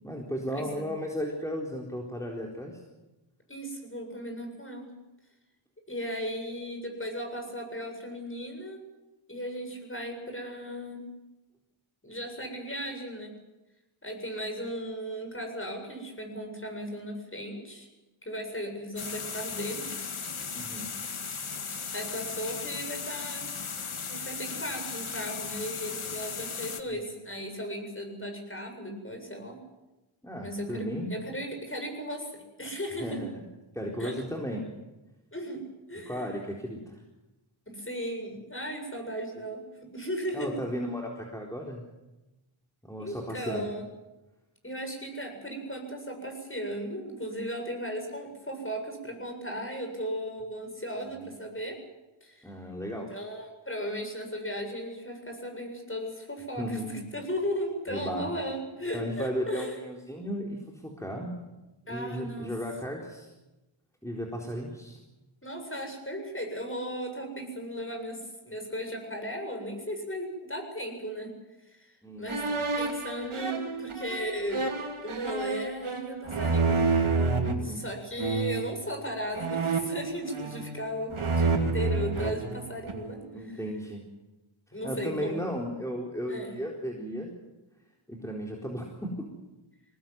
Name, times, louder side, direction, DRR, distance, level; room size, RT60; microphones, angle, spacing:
voice 1, 0.0-2.8 20.5-20.9 26.9-27.1 30.2-31.2 33.0-33.5 33.7-34.6 36.1-37.0 40.3-41.8 42.8-43.7 51.0-51.4 52.4-53.1 56.6-57.0 57.9-58.3 58.9-61.4 61.9-63.3 64.0-65.0 72.0-72.7 77.5-77.8 83.3-84.1 84.8-87.3 88.1-89.3, equal, 5° left, -1 dB, 4.2 m, -35 dB
voice 2, 0.6-0.9 3.5-4.9 5.9-8.8 9.3-11.1 12.0-13.3 14.0-17.9 18.2-19.9 21.9-23.6 24.1-29.6 30.4-33.2 34.0-34.2 35.3-35.6 35.9-36.3 37.7-40.5 43.0-43.8 44.6-51.8 52.2-52.5 53.1-59.8 61.9-62.5 65.4-71.3 71.7-71.9 72.2-74.7 75.0-77.0 77.6-83.6 84.7-85.4 86.3-86.5, equal, 25° left, 4 dB, 7.8 m, -36 dB
sound 1, 19.0-26.8, left 5 dB, 80° left, 1.9 m, -36 dB
sound 2, 72.3-77.5 78.2-78.7 79.3-80.8 81.1-83.1, right 3 dB, 85° right, 2.7 m, -29 dB
22.5 x 19.0 x 9.5 m, 1.0 s
wide cardioid pair, 45°, 49 cm